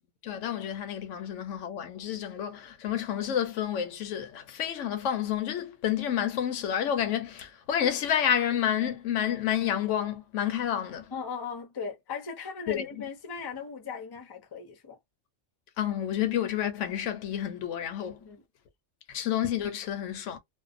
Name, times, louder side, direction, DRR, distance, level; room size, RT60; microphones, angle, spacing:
voice 1, 0.2-11.1 12.7-12.9 15.8-18.2 19.1-20.4, left 9 dB, 75° left, 0.9 m, -29 dB
voice 2, 11.1-15.0 18.2-18.4, left 5 dB, 30° left, 0.5 m, -38 dB
2.6 x 2.1 x 2.5 m
omnidirectional pair, 1.3 m